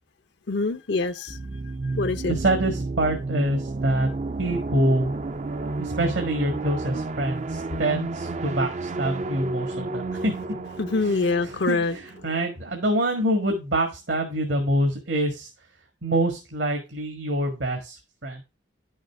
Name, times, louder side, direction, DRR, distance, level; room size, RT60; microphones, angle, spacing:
voice 1, 0.5-1.4 1.8-2.3 10.8-12.0, left 3 dB, 65° left, 0.6 m, -25 dB
sound 1, 1.3-12.8, right 3 dB, 35° right, 0.5 m, -32 dB
voice 2, 2.3-4.1 4.4-5.1 5.8-10.3 11.0-15.5 16.0-18.4, right 1 dB, 70° right, 1.7 m, -26 dB
10.5 x 6.5 x 3.5 m
head